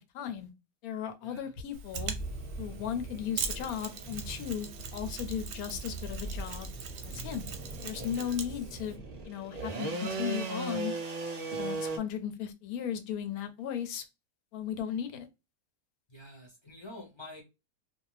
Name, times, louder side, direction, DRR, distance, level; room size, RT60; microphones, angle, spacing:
voice 1, 0.1-0.5 0.8-2.1 2.6-6.7 7.0-7.5 7.8-9.0 9.2-10.9 11.5-14.0 14.5-15.3, left 9 dB, 80° left, 1.0 m, -36 dB
voice 2, 1.2-1.5 8.1-8.6 16.1-17.4, left 1 dB, 30° left, 0.5 m, -48 dB
Mechanisms, 1.7-9.0, right 5 dB, 65° right, 0.8 m, -42 dB
sound 1, 1.9-9.3, right 2 dB, ahead, 0.8 m, -42 dB
sound 2, 2.2-12.0, right 2 dB, 90° right, 0.3 m, -40 dB
2.6 x 2.2 x 3.1 m
omnidirectional pair, 1.5 m